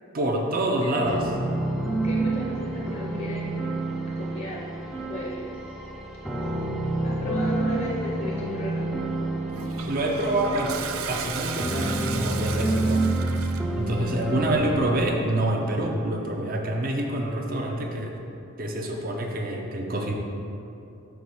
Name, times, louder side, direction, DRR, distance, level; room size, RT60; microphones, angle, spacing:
voice 1, 0.1-1.2 9.9-10.8 11.1-13.1 13.8-18.1 18.6-20.1, right 1 dB, 45° right, 1 dB, 0.6 m, -26 dB
voice 2, 0.8-1.2 2.0-3.8 4.1-5.6 7.0-8.9, left 1 dB, 40° left, -3 dB, 0.6 m, -35 dB
sound 1, 1.0-14.9, right 2 dB, ahead, 0.4 m, -29 dB
Toilet flush, 9.5-13.8, right 6 dB, 90° right, 0.4 m, -35 dB
4.7 x 4.2 x 5.4 m, 2.7 s
head